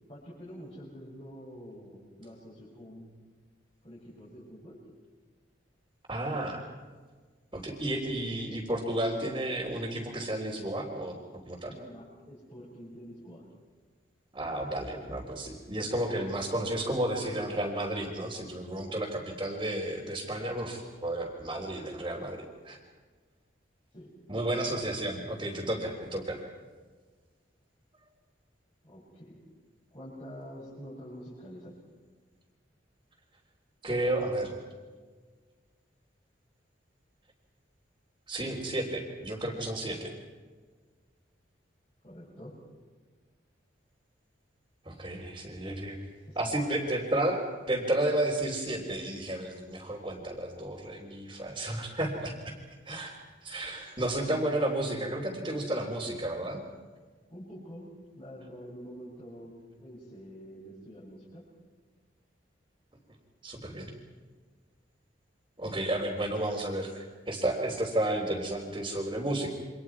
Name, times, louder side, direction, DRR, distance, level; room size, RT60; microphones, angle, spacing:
voice 1, 0.1-3.1 3.8-4.8 11.7-13.5 18.7-18.9 23.9-24.1 28.8-29.4 29.9-31.8 42.0-42.6 46.3-46.7 57.3-59.5 59.8-61.5, equal, 35° left, -8 dB, 7.1 m, -46 dB
voice 2, 6.1-6.6 7.5-11.2 11.5-11.7 14.3-22.8 24.3-26.4 33.8-34.5 38.3-40.1 44.9-46.0 46.4-52.5 52.9-53.2 53.4-56.6 63.4-63.9 65.6-69.5, right 1 dB, 25° right, -5 dB, 3.5 m, -32 dB
29.5 x 25.5 x 4.8 m, 1.4 s
head